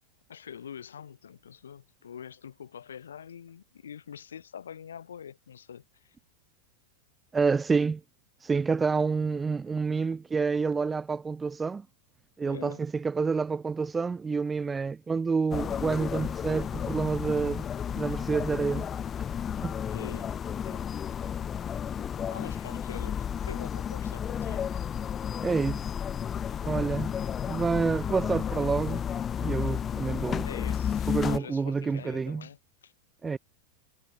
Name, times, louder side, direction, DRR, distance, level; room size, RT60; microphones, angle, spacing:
voice 1, 0.3-6.2 12.4-12.8 19.9-21.3 22.3-24.8 30.4-32.9, left 8 dB, 65° left, 8.0 m, -45 dB
voice 2, 7.3-8.0 8.4-11.8 12.4-17.6 17.9-18.9 19.6-19.8 25.4-25.9 26.6-27.1 27.5-29.0 29.4-30.5 31.1-32.5 33.2-33.4, right 5 dB, 15° right, 1.2 m, -28 dB
sound 1, 15.5-31.4, left 8 dB, 25° left, 1.4 m, -32 dB
figure-of-eight pair, 90°, 0 cm